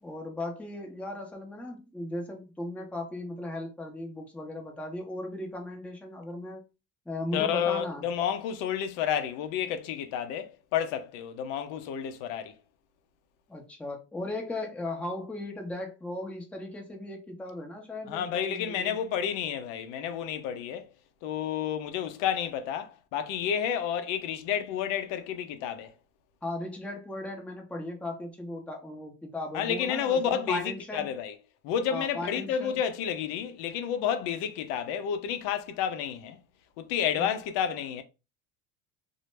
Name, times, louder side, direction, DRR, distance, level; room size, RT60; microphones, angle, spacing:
voice 1, 0.0-6.6 7.1-8.0 13.5-19.0 26.4-31.1 31.9-32.8 37.2-37.3, left 1 dB, 5° left, 0.6 m, -37 dB
voice 2, 7.3-12.5 18.1-20.9 21.2-25.9 29.5-31.3 31.6-36.4 36.8-38.0, left 8 dB, 65° left, 0.6 m, -30 dB
2.1 x 2.0 x 3.1 m
supercardioid pair, 85°, 47 cm